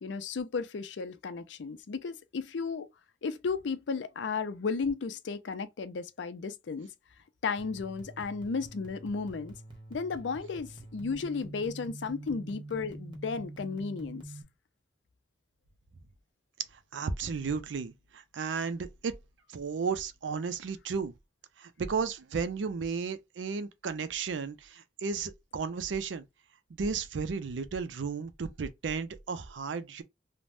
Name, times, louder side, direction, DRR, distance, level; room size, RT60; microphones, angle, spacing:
voice 1, 0.0-2.9 3.2-6.9 7.4-9.6 9.9-14.2, left 4 dB, 80° left, 0.5 m, -34 dB
sound 1, 7.6-14.4, right 2 dB, 25° right, 0.9 m, -46 dB
voice 2, 16.9-19.1 19.5-21.1 21.6-26.3 26.8-30.0, right 5 dB, 85° right, 0.5 m, -34 dB
3.3 x 2.1 x 2.5 m
head